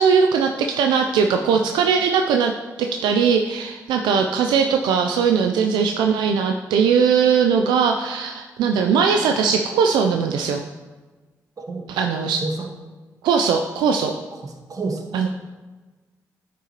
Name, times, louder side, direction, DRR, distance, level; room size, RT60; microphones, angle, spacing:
voice 1, 0.0-2.5 2.8-10.6 11.9-12.4 13.2-14.1 15.1-15.3, right 6 dB, 85° right, 4 dB, 0.4 m, -19 dB
voice 2, 11.6-12.7 14.3-15.3, right 3 dB, 55° right, 3 dB, 1.4 m, -31 dB
9.6 x 6.0 x 2.9 m, 1.3 s
supercardioid pair, 45°, 7 cm